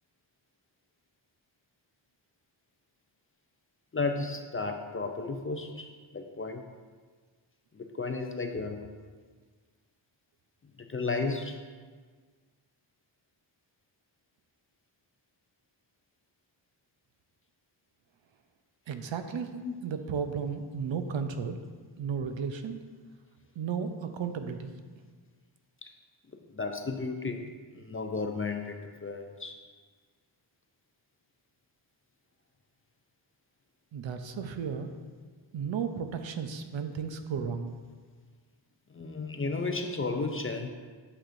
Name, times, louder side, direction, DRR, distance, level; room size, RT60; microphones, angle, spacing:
voice 1, 3.9-5.9 6.1-6.6 7.7-8.8 10.9-11.6 19.6-19.7 26.5-27.4 27.7-29.5 38.9-40.7, left 3 dB, 30° left, 5 dB, 0.4 m, -33 dB
voice 2, 18.9-21.6 22.0-22.8 23.6-24.7 33.9-34.9 35.5-37.7, right 6 dB, 70° right, 7 dB, 0.6 m, -34 dB
8.9 x 6.4 x 2.5 m, 1.5 s
wide cardioid pair, 155°, 47 cm